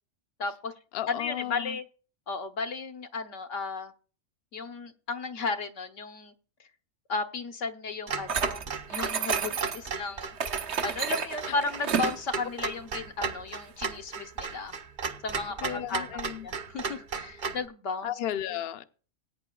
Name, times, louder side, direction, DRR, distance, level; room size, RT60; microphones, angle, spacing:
voice 1, 0.4-0.7 1.1-1.8 2.3-3.9 4.5-6.3 7.1-10.4 10.8-14.8 15.2-16.1 16.4-18.1, left 4 dB, 80° left, 7 dB, 1.3 m, -34 dB
voice 2, 0.9-1.8 11.5-11.6 15.6-16.5 18.0-18.8, left 11 dB, 60° left, 10 dB, 0.7 m, -34 dB
Clock, 8.1-17.6, right 5 dB, 45° right, 0.8 m, -35 dB
sound 1, 8.3-9.9 10.4-12.2, right 6 dB, 65° right, 1.1 m, -31 dB
19.0 x 9.0 x 2.3 m, 0.38 s
omnidirectional pair, 1.3 m